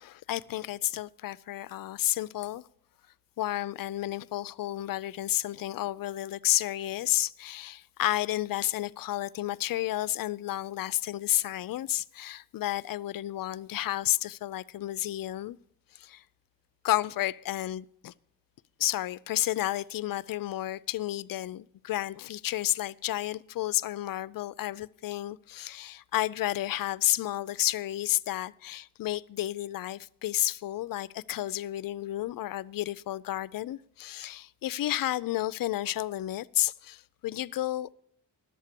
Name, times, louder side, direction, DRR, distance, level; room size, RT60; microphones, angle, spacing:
voice 1, 0.0-2.7 3.4-15.6 15.9-16.2 16.8-18.1 18.8-37.9, left 14 dB, 55° left, 0.5 m, -31 dB
11.0 x 8.1 x 6.7 m
cardioid pair, 65°, 41 cm